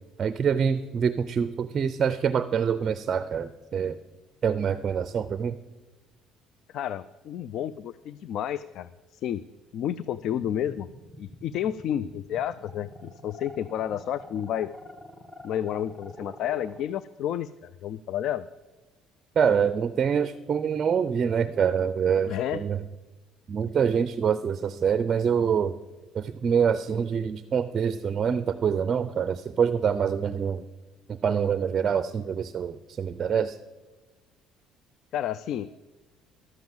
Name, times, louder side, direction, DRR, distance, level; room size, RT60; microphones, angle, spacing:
voice 1, 0.2-4.0 4.4-5.6 19.4-22.8 23.5-25.7 26.1-30.6 31.1-33.6, right 7 dB, 35° right, 13 dB, 0.5 m, -25 dB
voice 2, 6.7-9.4 9.7-10.9 11.2-14.7 15.4-18.5 22.3-22.6 35.1-35.7, left 10 dB, 60° left, 17 dB, 0.3 m, -31 dB
sound 1, 10.2-16.8, equal, 5° left, 1.1 m, -46 dB
12.0 x 7.8 x 7.2 m, 1.2 s
cardioid pair, 120°, 0 cm